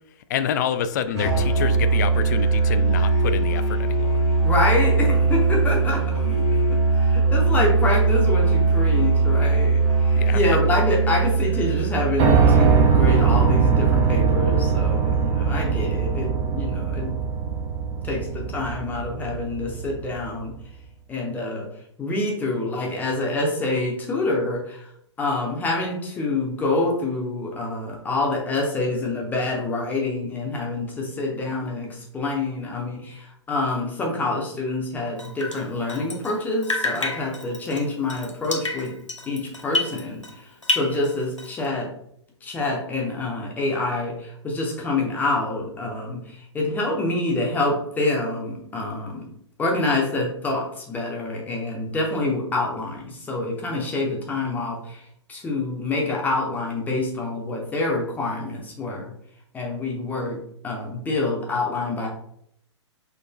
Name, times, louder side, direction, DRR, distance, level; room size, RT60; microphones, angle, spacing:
voice 1, 0.3-4.2 10.2-10.6, left 8 dB, 40° left, 11 dB, 0.4 m, -28 dB
Musical instrument, 1.1-12.9, right 4 dB, 60° right, 1.7 m, -20 dB
voice 2, 4.4-6.1 7.0-17.1 18.0-20.5 21.1-21.7 22.0-24.9 25.2-38.9 39.3-41.9 42.4-49.3 49.6-55.0 55.3-59.1 59.5-60.4 60.6-62.1, left 2 dB, 10° left, -1 dB, 0.9 m, -26 dB
Piano, 12.2-20.2, right 6 dB, 25° right, 0.5 m, -21 dB
Drip, 35.2-36.4 36.6-40.4 40.6-41.7, left 2 dB, 80° left, 0.7 m, -29 dB
5.1 x 3.9 x 2.3 m, 0.72 s
figure-of-eight pair, 110°, 15 cm